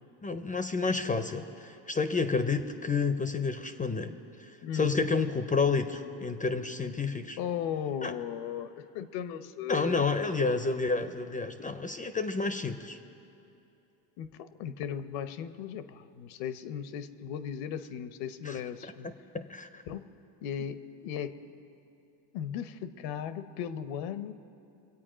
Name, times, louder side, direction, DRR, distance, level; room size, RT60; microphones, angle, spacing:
voice 1, 0.2-4.2 4.7-7.4 8.0-8.1 9.7-13.0 18.4-18.6 19.3-19.8, left 4 dB, 15° left, 10 dB, 0.4 m, -30 dB
voice 2, 7.4-10.1 14.2-19.1 19.9-20.1 20.4-21.4 22.3-24.3, left 9 dB, 80° left, 12 dB, 0.9 m, -37 dB
23.5 x 8.6 x 5.0 m, 2.8 s
supercardioid pair, 105°, 49 cm